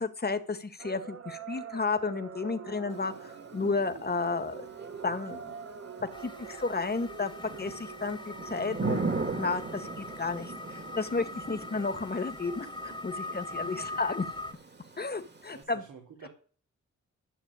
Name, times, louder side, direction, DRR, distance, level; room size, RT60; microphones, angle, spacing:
voice 1, 0.0-4.7 5.0-5.6 6.2-7.3 7.6-9.0 9.4-14.2 15.0-15.8, left 4 dB, 30° left, 9 dB, 1.9 m, -32 dB
sound 1, 0.8-8.7, right 6 dB, 50° right, 1.4 m, -44 dB
Thunder / Rain, 2.9-15.6, right 3 dB, 35° right, 2.4 m, -40 dB
sound 2, 6.1-14.5, left 2 dB, 15° left, 1.4 m, -42 dB
voice 2, 13.4-14.0 15.5-16.3, right 5 dB, 80° right, 1 dB, 3.4 m, -49 dB
12.5 x 6.5 x 8.3 m, 0.42 s
cardioid pair, 60°, 31 cm